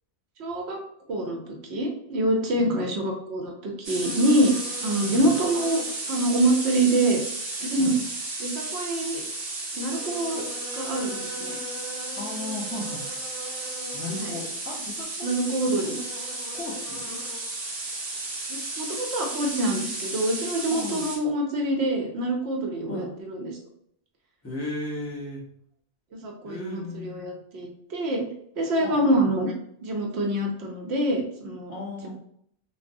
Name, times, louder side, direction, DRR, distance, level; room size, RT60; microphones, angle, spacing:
voice 1, 0.4-0.8 1.1-4.5 4.8-7.2 7.6-8.0 8.4-9.2 9.7-10.4 10.7-11.6 14.2-14.3 15.2-16.0 18.5-23.6 26.1-28.3 28.6-29.5 29.8-31.7 32.0-32.1, right 1 dB, 75° right, 1 dB, 0.8 m, -26 dB
sound 1, 3.8-21.2, right 2 dB, 40° right, 0.6 m, -34 dB
sound 2, 4.0-19.2, left 1 dB, 65° left, 0.7 m, -43 dB
voice 2, 5.0-5.3 7.8-8.0 12.2-13.0 13.9-15.3 15.7-15.9 16.5-17.2 20.7-21.0 22.9-23.1 24.4-25.4 26.4-27.3 28.8-29.2 31.7-32.1, left 2 dB, 15° left, -4 dB, 0.6 m, -36 dB
3.3 x 2.0 x 2.6 m, 0.68 s
omnidirectional pair, 1.1 m